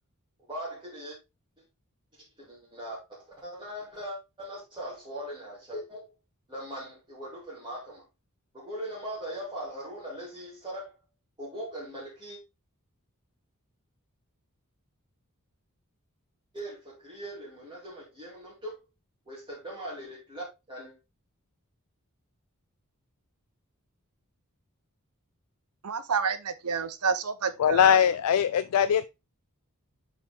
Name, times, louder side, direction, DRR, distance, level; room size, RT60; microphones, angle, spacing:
voice 1, 0.5-1.2 2.5-3.0 3.4-6.0 6.5-8.0 8.5-10.9 11.4-12.4 16.5-18.8 19.3-20.9, right 1 dB, 20° right, 2.6 m, -40 dB
voice 2, 25.8-28.0, right 5 dB, 85° right, 0.9 m, -29 dB
voice 3, 27.6-29.1, left 8 dB, 85° left, 0.4 m, -21 dB
8.3 x 4.2 x 3.5 m
head